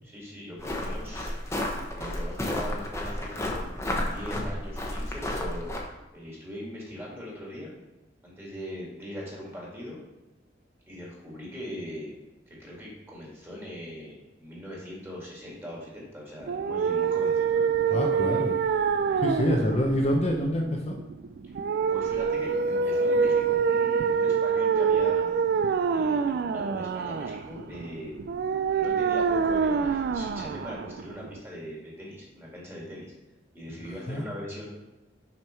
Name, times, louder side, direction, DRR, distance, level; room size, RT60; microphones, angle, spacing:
voice 1, 0.0-1.3 1.9-3.7 4.0-5.7 6.1-7.7 8.2-10.0 10.9-12.1 12.5-18.4 19.1-19.3 21.4-21.5 21.9-25.3 25.9-28.2 28.7-33.1 33.5-34.7, equal, 15° right, -4 dB, 2.2 m, -40 dB
sound 1, 0.6-5.8, left 1 dB, 15° left, 1.0 m, -32 dB
sound 2, 16.4-31.4, right 6 dB, 60° right, 0.3 m, -26 dB
voice 2, 17.9-18.6 19.2-21.0 34.1-34.2, equal, 35° left, 0 dB, 0.7 m, -26 dB
6.0 x 5.4 x 4.5 m, 1.0 s
head